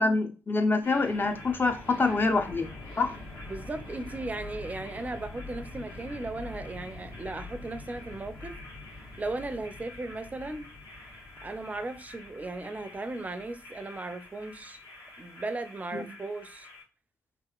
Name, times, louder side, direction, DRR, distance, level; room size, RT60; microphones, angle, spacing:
voice 1, 0.0-3.2 15.9-16.0, left 3 dB, 30° left, 0.6 m, -26 dB
sound 1, 0.8-16.8, left 2 dB, 60° left, 1.1 m, -45 dB
voice 2, 3.5-8.6 9.2-10.7 11.4-14.8 15.2-16.7, right 2 dB, 20° right, 0.4 m, -36 dB
2.8 x 2.4 x 2.3 m
hypercardioid pair, 45°, 7 cm